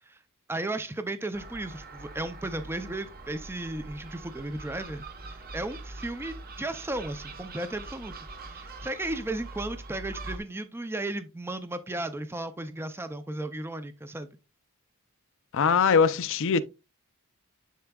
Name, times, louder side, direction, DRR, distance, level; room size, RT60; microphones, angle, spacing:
voice 1, 0.5-5.0 5.5-14.3, right 2 dB, 10° right, 0.5 m, -35 dB
Gull seagull, 1.3-10.4, right 2 dB, 45° right, 1.0 m, -43 dB
voice 2, 15.5-16.6, left 5 dB, 60° left, 0.5 m, -22 dB
10.5 x 4.4 x 2.3 m
head